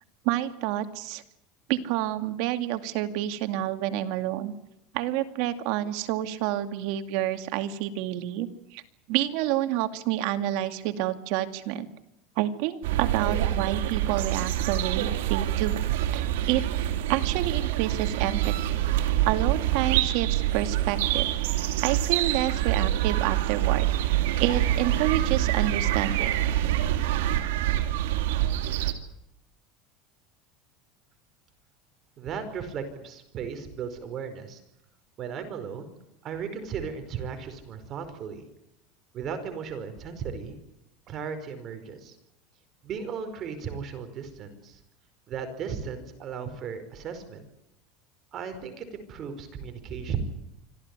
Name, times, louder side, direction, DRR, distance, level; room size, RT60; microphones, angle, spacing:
voice 1, 0.2-1.2 1.7-4.5 4.9-8.8 9.1-11.9 12.4-15.8 16.1-16.6 17.1-18.5 19.3-21.3 21.8-26.3, right 13 dB, 60° right, 8 dB, 2.4 m, -29 dB
sound 1, 12.8-28.9, right 13 dB, 90° right, 2.7 m, -26 dB
voice 2, 32.2-34.6 35.2-35.9 36.2-38.4 39.1-40.6 41.1-42.2 42.8-44.8 45.3-47.4 48.3-50.2, right 6 dB, 35° right, 8 dB, 5.0 m, -36 dB
25.5 x 16.0 x 9.8 m, 0.83 s
supercardioid pair, 150°, 0 cm